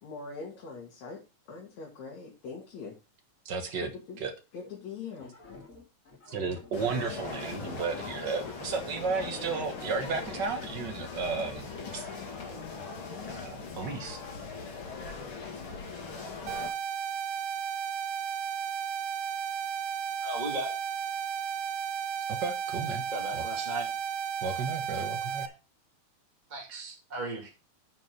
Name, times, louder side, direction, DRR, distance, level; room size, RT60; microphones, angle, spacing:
voice 1, 0.0-3.0 3.8-4.2 4.5-5.3, left 4 dB, 65° left, 3.4 m, -42 dB
voice 2, 3.4-3.9 4.2-4.3 6.3-12.1 13.3-14.2 22.3-23.0 23.3-23.4 24.4-25.4, right 4 dB, 50° right, 1.5 m, -33 dB
sound 1, 5.2-7.3 7.5-10.4, left 4 dB, 30° left, 2.4 m, -47 dB
sound 2, 6.7-16.7, left 4 dB, 45° left, 2.7 m, -40 dB
sound 3, 16.5-25.5, right 7 dB, 75° right, 2.1 m, -34 dB
voice 3, 20.2-20.7 23.1-23.9 26.5-27.5, right 1 dB, 15° right, 2.0 m, -36 dB
9.6 x 5.3 x 5.4 m
omnidirectional pair, 3.5 m